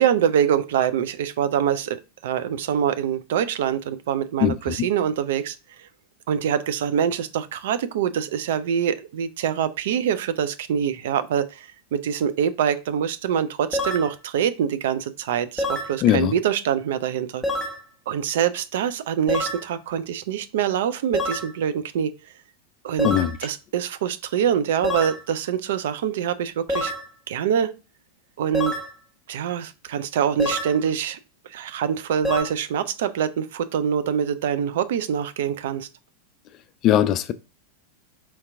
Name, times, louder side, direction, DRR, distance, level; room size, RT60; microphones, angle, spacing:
voice 1, 0.0-5.9 6.3-17.4 18.1-22.1 22.8-23.1 23.4-26.9 27.3-27.7 28.4-28.7 29.3-31.2 31.5-35.9, right 8 dB, 55° right, 0.4 m, -24 dB
voice 2, 4.4-4.9 16.0-16.3 23.0-23.3 36.8-37.3, left 11 dB, 35° left, 0.3 m, -20 dB
sound 1, 13.7-14.1 15.6-16.0 17.4-17.8 19.3-19.7 21.1-21.5 23.0-23.4 24.8-25.2 26.7-27.1 28.5-28.9 30.4-30.8 32.2-32.4, left 1 dB, 10° left, 0.9 m, -26 dB
4.4 x 2.8 x 3.5 m
figure-of-eight pair, 90°, 0 cm